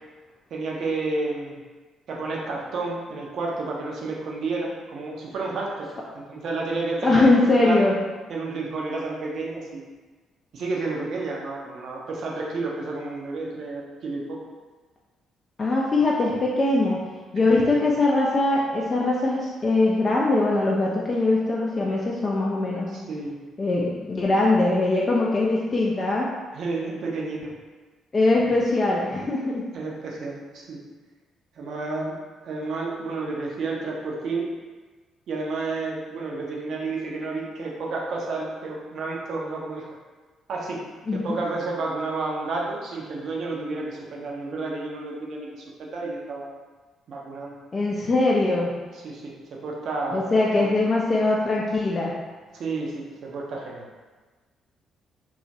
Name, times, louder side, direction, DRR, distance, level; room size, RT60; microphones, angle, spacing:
voice 1, 0.5-1.6 2.1-5.9 6.1-7.8 8.3-9.8 10.5-14.4 17.5-17.8 22.9-23.4 26.5-27.5 28.4-28.6 29.7-30.8 31.6-32.2 32.4-34.5 35.3-39.9 40.5-40.8 41.1-46.5 47.1-47.5 49.0-49.3 49.6-50.3 50.6-50.7 52.5-53.9, right 3 dB, 55° right, -2 dB, 0.5 m, -31 dB
voice 2, 7.0-7.9 15.6-17.0 17.3-22.9 23.6-26.3 28.1-29.7 41.1-41.3 47.7-48.8 50.1-52.1, left 2 dB, 35° left, -4 dB, 0.4 m, -22 dB
2.8 x 2.3 x 2.6 m, 1.3 s
figure-of-eight pair, 45°, 0 cm